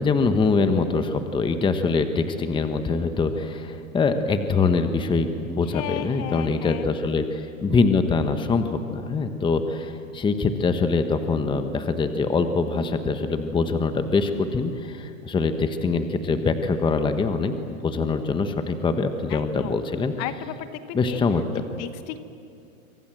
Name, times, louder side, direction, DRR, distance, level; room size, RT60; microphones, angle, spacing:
voice 1, 0.0-20.1 20.9-21.4, left 4 dB, 10° left, 8 dB, 1.2 m, -24 dB
voice 2, 5.6-6.9 19.3-19.8 20.2-21.2 21.8-22.2, left 12 dB, 35° left, 11 dB, 1.3 m, -34 dB
28.0 x 24.5 x 7.7 m, 2.5 s
hypercardioid pair, 135°, 43 cm